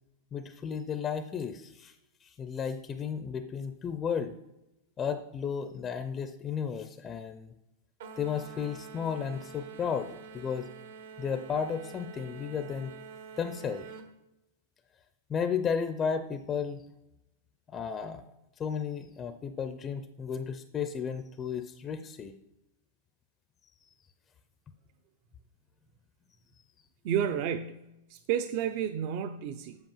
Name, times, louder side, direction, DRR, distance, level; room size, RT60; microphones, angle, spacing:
voice 1, 0.3-1.9 2.2-4.3 5.0-7.5 8.2-10.7 11.2-12.9 13.4-13.8 15.3-16.8 17.7-18.2 18.6-22.3, left 7 dB, 20° left, 9 dB, 0.5 m, -33 dB
sound 1, 8.0-14.1, right 5 dB, 65° right, 1.2 m, -47 dB
voice 2, 27.0-29.8, right 9 dB, 40° right, 9 dB, 0.5 m, -31 dB
8.0 x 5.2 x 7.2 m, 0.92 s
supercardioid pair, 160°, 0 cm